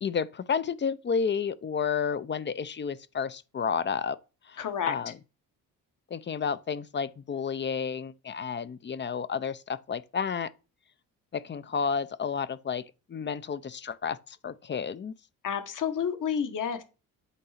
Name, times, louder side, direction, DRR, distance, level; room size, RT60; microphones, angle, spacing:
voice 1, 0.0-4.2 4.5-5.2 6.1-10.5 11.3-12.8 13.1-15.1, left 6 dB, 30° left, 0.5 m, -31 dB
voice 2, 4.6-4.9 15.4-16.8, left 8 dB, 55° left, 1.3 m, -30 dB
8.1 x 2.8 x 5.7 m
supercardioid pair, 65°, 38 cm